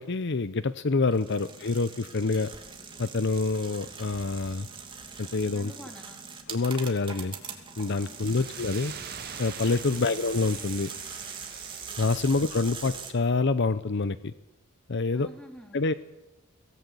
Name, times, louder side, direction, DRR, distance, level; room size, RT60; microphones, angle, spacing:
voice 1, 0.0-2.5 3.0-4.7 5.2-5.7 6.5-7.4 7.8-8.9 9.4-10.9 12.0-14.3 14.9-15.3 15.7-15.9, left 3 dB, 55° left, 14 dB, 0.7 m, -26 dB
sound 1, 1.0-11.2, equal, 35° left, 3.0 m, -56 dB
sound 2, 1.1-13.1, right 5 dB, 25° right, 2.9 m, -42 dB
voice 2, 5.5-6.3 8.0-8.5 9.9-10.2 15.1-15.8, equal, 5° left, 2 dB, 3.7 m, -48 dB
sound 3, 7.9-12.9, right 8 dB, 50° right, 1.3 m, -45 dB
24.0 x 18.0 x 8.4 m, 0.99 s
head